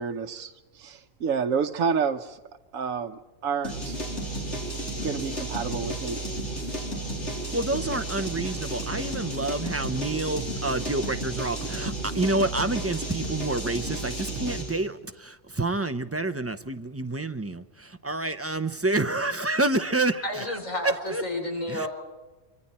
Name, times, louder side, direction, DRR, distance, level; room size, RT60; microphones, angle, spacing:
voice 1, 0.0-2.4 2.7-4.0 5.0-6.2, right 6 dB, 85° right, 4 dB, 1.3 m, -29 dB
sound 1, 3.6-14.8, right 1 dB, 60° left, 4.6 m, -32 dB
voice 2, 7.5-20.6 20.8-21.2 21.7-21.9, right 2 dB, 15° right, 9 dB, 0.5 m, -28 dB
voice 3, 20.2-21.9, left 1 dB, 80° left, 3 dB, 4.4 m, -31 dB
25.0 x 25.0 x 4.3 m, 1.2 s
omnidirectional pair, 1.4 m